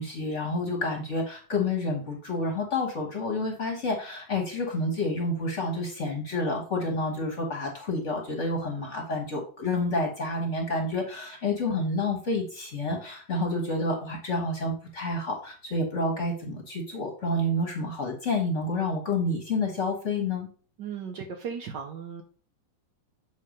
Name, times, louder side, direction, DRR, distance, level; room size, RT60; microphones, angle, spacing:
voice 1, 0.0-20.5, left 2 dB, 40° left, 1 dB, 1.4 m, -29 dB
voice 2, 20.8-22.2, right 7 dB, 65° right, 4 dB, 1.2 m, -36 dB
7.6 x 3.3 x 5.2 m, 0.42 s
omnidirectional pair, 2.4 m